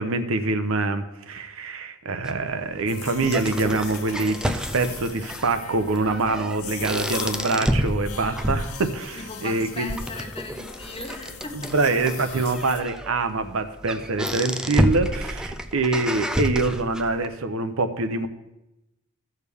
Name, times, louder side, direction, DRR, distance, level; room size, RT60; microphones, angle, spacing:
voice 1, 0.0-10.0 11.5-18.3, right 3 dB, 65° right, 8 dB, 0.7 m, -25 dB
sound 1, 2.2-17.2, equal, 5° right, 0.3 m, -30 dB
sound 2, 2.9-12.8, left 7 dB, 75° left, 0.9 m, -39 dB
voice 2, 9.2-11.8, left 2 dB, 25° left, 5 dB, 0.9 m, -38 dB
15.0 x 6.5 x 3.5 m, 0.92 s
head